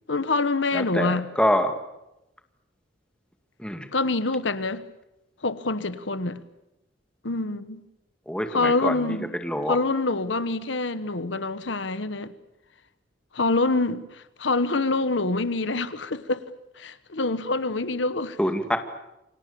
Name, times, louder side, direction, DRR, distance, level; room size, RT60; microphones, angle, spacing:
voice 1, 0.1-1.2 3.9-4.8 5.4-6.4 7.2-7.8 8.5-9.3 9.7-12.3 13.3-16.4 16.8-18.4, left 3 dB, 80° left, 1.3 m, -26 dB
voice 2, 0.7-1.7 3.6-3.9 8.3-9.2 9.4-9.8 18.4-18.8, equal, 5° left, 2.1 m, -25 dB
29.0 x 24.5 x 7.1 m
head